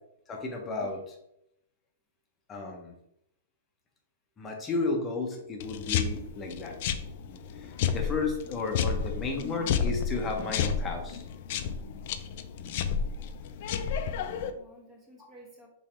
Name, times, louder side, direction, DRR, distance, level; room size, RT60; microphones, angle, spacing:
voice 1, 0.3-1.2 2.5-3.0 4.4-6.8 7.2-11.2, left 4 dB, 15° left, 1 dB, 0.7 m, -33 dB
sound 1, 5.6-14.5, left 7 dB, 45° left, 0.3 m, -31 dB
voice 2, 8.4-8.8 14.1-15.7, right 1 dB, 15° right, -1 dB, 1.1 m, -54 dB
3.4 x 3.0 x 4.3 m, 0.78 s
hypercardioid pair, 165°, 0 cm